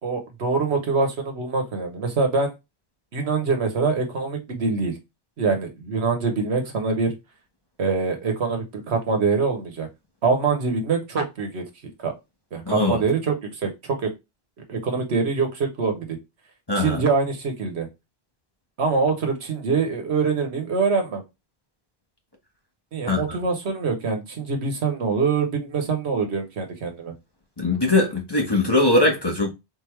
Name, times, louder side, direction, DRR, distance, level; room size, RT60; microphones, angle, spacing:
voice 1, 0.0-2.5 3.1-5.0 5.4-7.1 7.8-9.9 10.2-11.7 12.0-12.1 12.5-14.1 14.7-16.2 16.7-17.9 18.8-21.2 22.9-27.1, right 4 dB, 80° right, 1.3 m, -24 dB
voice 2, 12.7-13.0 16.7-17.0 23.1-23.4 27.6-29.5, left 2 dB, 25° left, 1.0 m, -21 dB
4.1 x 3.5 x 3.1 m
omnidirectional pair, 1.1 m